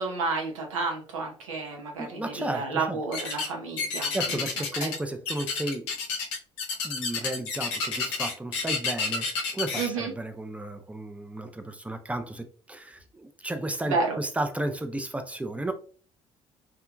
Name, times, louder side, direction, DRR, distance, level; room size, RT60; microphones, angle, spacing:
voice 1, 0.0-4.4 4.8-4.9 9.8-10.1 13.9-14.2, right 4 dB, 85° right, 0.7 m, -31 dB
voice 2, 2.0-3.0 4.1-5.9 6.8-9.3 9.5-15.7, right 1 dB, 10° right, 0.5 m, -33 dB
sound 1, 3.1-3.5 3.8-5.0 5.3-9.9, left 4 dB, 75° left, 0.6 m, -30 dB
2.7 x 2.4 x 2.2 m
hypercardioid pair, 55°, 16 cm